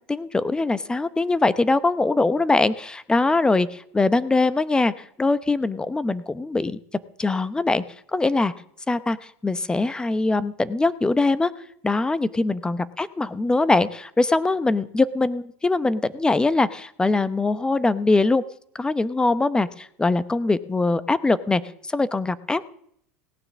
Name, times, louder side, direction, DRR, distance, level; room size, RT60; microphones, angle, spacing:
voice 1, 0.0-6.8 7.2-7.8 8.1-8.5 8.9-9.2 9.4-11.5 11.8-18.4 18.8-21.6 21.9-22.7, left 3 dB, 10° left, 15 dB, 0.8 m, -22 dB
17.5 x 9.6 x 7.3 m, 0.69 s
supercardioid pair, 115°, 8 cm